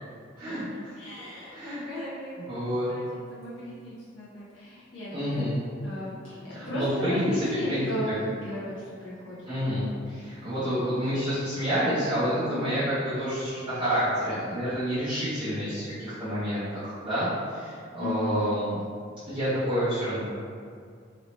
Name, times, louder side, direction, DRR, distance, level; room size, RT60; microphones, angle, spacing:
voice 1, 0.4-1.0 1.5-1.8 2.4-2.9 5.1-5.6 6.5-7.3 7.7-8.1 9.5-18.8 19.3-20.3, equal, 25° right, -16 dB, 1.0 m, -29 dB
voice 2, 1.0-2.4 2.9-5.4 5.8-6.4 6.6-9.4 9.6-9.9 12.4-12.6 16.2-16.5 18.0-18.4, left 1 dB, 70° left, -10 dB, 0.8 m, -35 dB
3.1 x 2.8 x 3.1 m, 2.2 s
head